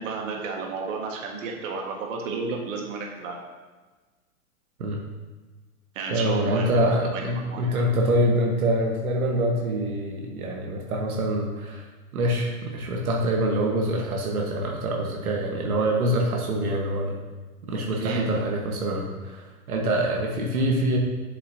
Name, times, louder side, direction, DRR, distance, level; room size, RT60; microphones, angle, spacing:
voice 1, 0.0-3.4 5.9-7.8 17.9-18.2, right 4 dB, 60° right, 1 dB, 1.6 m, -32 dB
voice 2, 6.1-11.8 12.1-17.2 17.7-21.0, right 1 dB, 80° right, 0 dB, 1.5 m, -25 dB
7.9 x 7.0 x 2.8 m, 1.3 s
hypercardioid pair, 130°, 43 cm